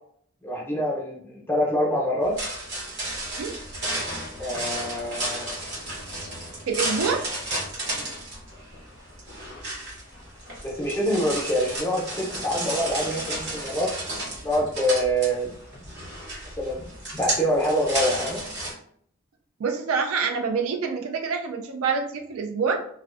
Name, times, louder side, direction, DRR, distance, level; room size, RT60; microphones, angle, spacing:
voice 1, 0.4-2.3 4.4-5.6 7.9-8.1 10.6-13.9 14.4-15.5 16.6-16.9 17.1-18.4, equal, 10° left, -3 dB, 0.5 m, -25 dB
sound 1, 2.2-18.7, right 1 dB, 50° right, 1.0 m, -33 dB
voice 2, 6.7-7.3 19.6-22.8, right 5 dB, 85° right, 4 dB, 0.4 m, -26 dB
2.5 x 2.1 x 2.4 m, 0.64 s
head